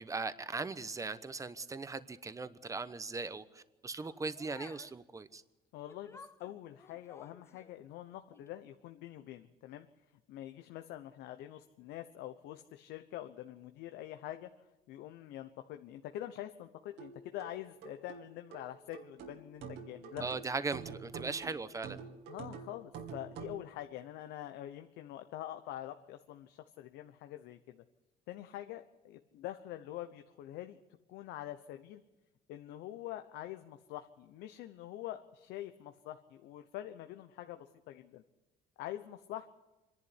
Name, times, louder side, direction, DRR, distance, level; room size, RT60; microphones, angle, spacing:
voice 1, 0.0-5.4 20.2-22.0, right 4 dB, 20° right, 13 dB, 1.0 m, -39 dB
sound 1, 3.9-5.0 5.9-7.8 8.3-8.5, left 3 dB, 15° left, 0.9 m, -55 dB
voice 2, 5.7-9.9 10.3-14.5 14.9-20.3 22.3-27.8 28.3-30.8 31.1-32.0 32.5-38.2 38.8-39.6, left 13 dB, 85° left, 8 dB, 0.9 m, -45 dB
sound 2, 17.0-23.6, right 6 dB, 85° right, 2.6 m, -47 dB
25.5 x 11.0 x 9.9 m, 1.0 s
cardioid pair, 110°, 17 cm